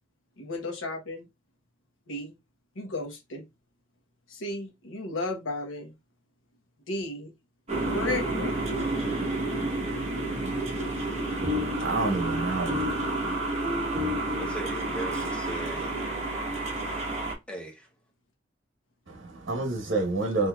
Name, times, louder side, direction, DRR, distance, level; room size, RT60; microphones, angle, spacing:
voice 1, 0.4-1.3 2.1-2.3 2.8-3.4 4.3-5.9 6.9-7.3 7.9-8.7 12.8-13.1 13.4-13.8 16.3-16.5 16.9-17.0, left 2 dB, 85° left, 1.0 m, -35 dB
sound 1, 7.7-17.3, right 2 dB, 35° right, 1.1 m, -30 dB
sound 2, 10.9-15.2, left 4 dB, 15° right, 1.4 m, -34 dB
voice 2, 11.5-13.3 19.1-20.5, right 3 dB, 70° right, 0.9 m, -29 dB
voice 3, 14.3-15.9 17.5-17.9, right 1 dB, 5° left, 0.7 m, -38 dB
4.4 x 2.7 x 2.3 m
head